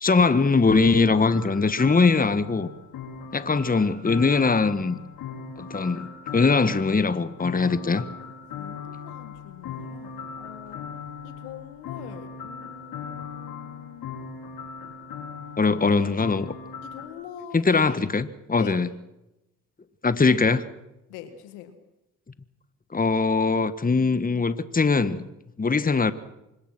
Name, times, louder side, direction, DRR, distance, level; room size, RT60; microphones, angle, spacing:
voice 1, 0.0-2.7 3.3-5.0 5.6-8.0 15.6-16.5 17.5-18.9 20.0-20.6 22.9-25.3 25.6-26.1, left 4 dB, 25° left, 14 dB, 1.4 m, -21 dB
sound 1, 0.6-17.1, left 6 dB, 75° left, 5.2 m, -38 dB
voice 2, 8.5-10.9 11.2-14.1 15.8-16.4 16.8-18.1 18.6-18.8 21.1-21.8, left 11 dB, 90° left, 9 dB, 2.0 m, -43 dB
25.5 x 21.5 x 6.1 m, 0.91 s
hypercardioid pair, 55°, 36 cm